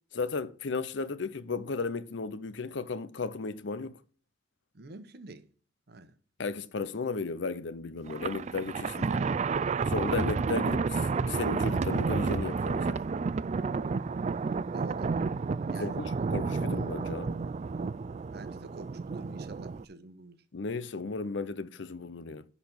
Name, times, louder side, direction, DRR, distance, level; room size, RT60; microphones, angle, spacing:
voice 1, 0.1-3.9 6.4-9.2 9.9-13.1 15.7-17.4 20.5-22.4, left 4 dB, 70° left, 0.7 m, -35 dB
voice 2, 4.7-5.4 5.9-6.2 14.7-15.2 15.7-16.0 18.3-20.4, right 2 dB, 60° right, 1.0 m, -47 dB
Thunder, 8.1-19.8, right 4 dB, 40° right, 0.4 m, -31 dB
10.5 x 4.2 x 7.1 m
head